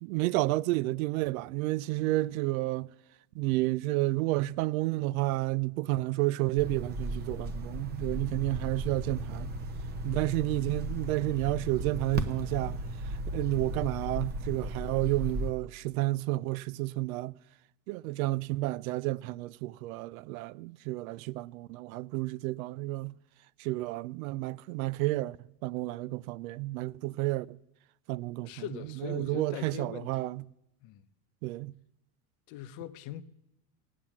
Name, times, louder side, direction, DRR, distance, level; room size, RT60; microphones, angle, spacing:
voice 1, 0.0-2.9 3.3-9.5 10.0-17.3 17.9-23.1 23.6-25.4 25.6-27.6 28.1-28.5 29.0-30.4 31.4-31.7, right 19 dB, 70° right, 0.5 m, -31 dB
sound 1, 6.6-15.5, right 1 dB, 20° right, 0.9 m, -36 dB
voice 2, 28.4-30.3 30.8-31.0 32.5-33.2, left 12 dB, 45° left, 0.8 m, -41 dB
16.5 x 9.2 x 7.2 m
supercardioid pair, 155°, 44 cm